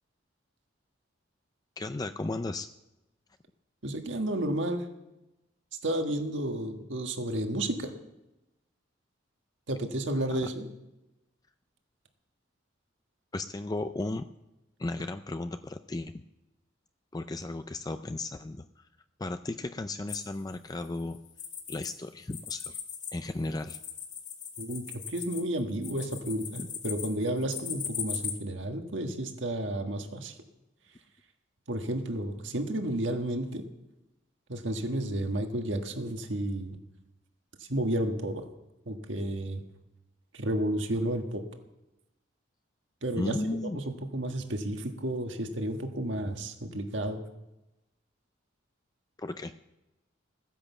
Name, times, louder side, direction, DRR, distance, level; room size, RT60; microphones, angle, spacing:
voice 1, 1.8-2.7 13.3-14.3 14.8-16.2 17.1-18.9 19.2-21.2 21.7-22.8 23.1-23.8 43.1-43.8 49.2-49.5, left 2 dB, 20° left, 9 dB, 0.4 m, -35 dB
voice 2, 3.8-4.8 5.8-7.9 9.7-10.6 24.6-30.3 31.7-33.6 34.5-36.8 37.7-38.4 38.8-39.6 40.3-41.4 43.0-43.3 43.7-47.2, right 1 dB, 70° right, 4 dB, 1.6 m, -32 dB
sound 1, 20.1-21.9 22.2-28.3, left 7 dB, 40° left, 2.3 m, -39 dB
15.5 x 10.0 x 7.1 m, 0.97 s
head